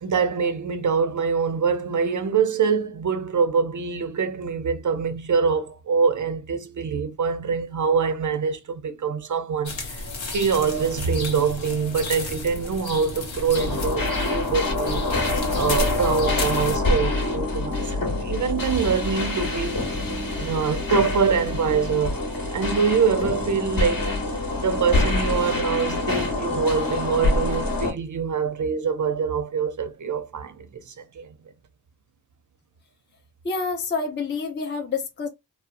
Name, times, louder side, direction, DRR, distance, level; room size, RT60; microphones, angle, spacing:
voice 1, 0.0-15.0 15.6-19.9 20.4-22.2 22.5-24.2 24.6-31.3, right 6 dB, 40° right, 0.5 m, -24 dB
sound 1, 9.7-16.8, left 2 dB, 75° left, 0.8 m, -32 dB
sound 2, 13.5-27.9, left 2 dB, 50° left, 0.9 m, -26 dB
voice 2, 33.4-35.3, left 4 dB, 25° left, 0.5 m, -28 dB
2.8 x 2.0 x 2.4 m
wide cardioid pair, 70°, 45 cm